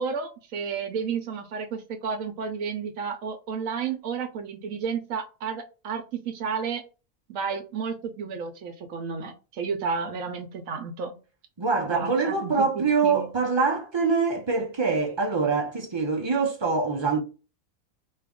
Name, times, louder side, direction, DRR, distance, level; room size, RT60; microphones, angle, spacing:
voice 1, 0.0-6.8 7.3-11.1 11.9-13.3, right 5 dB, 75° right, 1.0 m, -32 dB
voice 2, 11.6-17.2, right 4 dB, 40° right, 0.4 m, -24 dB
2.8 x 2.4 x 3.5 m
omnidirectional pair, 1.4 m